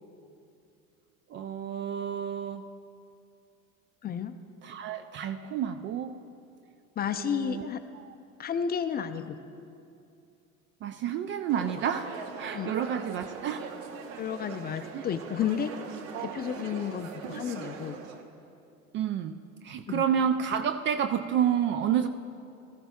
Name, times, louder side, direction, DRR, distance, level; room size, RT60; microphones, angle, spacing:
voice 1, 1.3-2.7 4.6-6.2 7.1-8.2 10.8-13.7 14.9-15.0 16.1-16.4 18.9-22.1, right 8 dB, 30° right, 10 dB, 0.3 m, -30 dB
voice 2, 4.0-4.3 7.0-7.8 8.4-9.4 12.5-12.7 14.2-15.7 16.2-18.0 19.9-20.0, left 8 dB, 25° left, 9 dB, 0.5 m, -32 dB
sound 1, 11.5-18.2, right 6 dB, 65° right, 1.1 m, -41 dB
18.5 x 13.5 x 2.3 m, 2.6 s
figure-of-eight pair, 70°, 42 cm